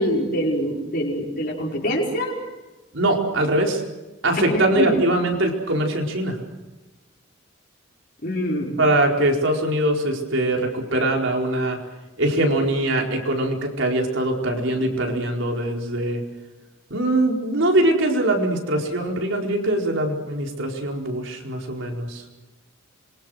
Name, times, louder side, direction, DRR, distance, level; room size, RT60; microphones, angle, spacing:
voice 1, 0.0-2.3 4.5-4.9 8.2-8.8, equal, 45° left, -4 dB, 5.4 m, -25 dB
voice 2, 2.9-3.8 4.2-6.4 8.8-11.8 12.2-16.2 16.9-22.2, right 1 dB, 70° right, 1 dB, 4.6 m, -22 dB
26.5 x 24.0 x 6.5 m, 1.1 s
head